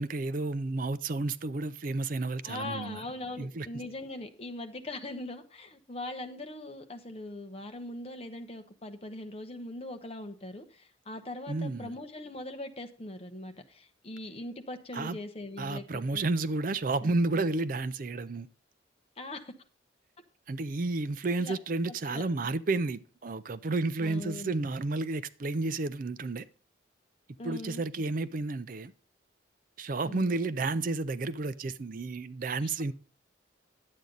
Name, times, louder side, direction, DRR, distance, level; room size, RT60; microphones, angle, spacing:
voice 1, 0.0-3.0 3.4-3.7 11.5-11.9 14.9-15.2 15.6-18.5 20.5-26.4 27.4-28.9 29.8-32.9, right 3 dB, 45° right, 0.4 m, -31 dB
voice 2, 2.4-16.2 17.0-17.2 19.2-19.5 21.4-21.6 21.9-22.2 24.0-24.6 27.4-27.8 30.0-30.3 32.6-32.7, left 1 dB, 30° left, 1.0 m, -41 dB
10.5 x 8.4 x 3.9 m
head